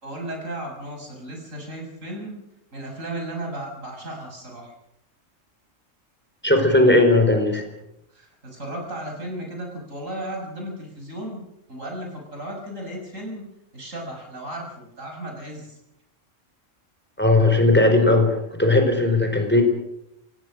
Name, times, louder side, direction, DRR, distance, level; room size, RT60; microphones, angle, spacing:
voice 1, 0.0-2.4 2.7-4.7 8.1-11.4 11.7-13.5 13.7-15.8, right 1 dB, 85° right, 1 dB, 7.1 m, -35 dB
voice 2, 6.4-7.6 17.2-19.6, left 2 dB, 10° left, 4 dB, 4.5 m, -17 dB
28.5 x 17.5 x 6.4 m, 0.83 s
omnidirectional pair, 1.3 m